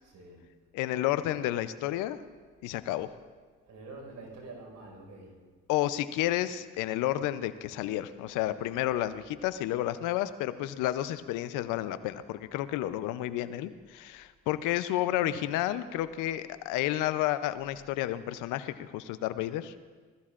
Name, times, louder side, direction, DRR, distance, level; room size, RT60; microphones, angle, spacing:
voice 1, 0.0-0.5 3.7-5.4 9.3-9.4 12.0-12.7, right 2 dB, 70° right, 0 dB, 4.9 m, -48 dB
voice 2, 0.7-2.2 2.6-3.1 5.7-19.7, left 13 dB, 85° left, 13 dB, 0.6 m, -31 dB
19.5 x 14.5 x 2.5 m, 1.5 s
supercardioid pair, 65°, 30 cm